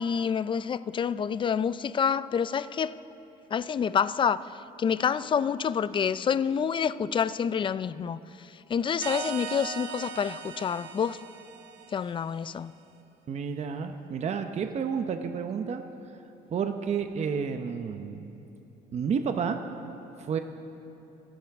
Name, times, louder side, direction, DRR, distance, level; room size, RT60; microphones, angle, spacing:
voice 1, 0.0-3.0 3.5-4.4 4.8-8.2 8.7-11.2 11.9-12.7, left 7 dB, 30° left, 0.4 m, -27 dB
sound 1, 9.0-12.4, right 8 dB, 75° right, 1.1 m, -39 dB
voice 2, 13.3-15.8 16.5-18.3 18.9-19.6 20.2-20.4, right 6 dB, 40° right, 0.8 m, -30 dB
28.5 x 11.5 x 3.5 m
cardioid pair, 110°, 17 cm